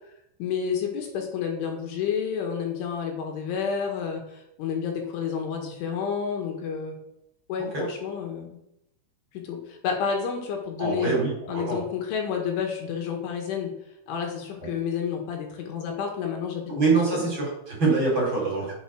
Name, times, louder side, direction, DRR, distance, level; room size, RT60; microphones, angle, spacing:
voice 1, 0.4-7.0 7.5-8.6 9.3-11.2 11.5-13.7 14.1-17.3, left 7 dB, 70° left, 2 dB, 4.3 m, -30 dB
voice 2, 10.8-11.8 14.6-14.7 16.7-18.7, right 4 dB, 25° right, -3 dB, 4.7 m, -25 dB
12.5 x 8.2 x 6.5 m, 0.82 s
omnidirectional pair, 5.8 m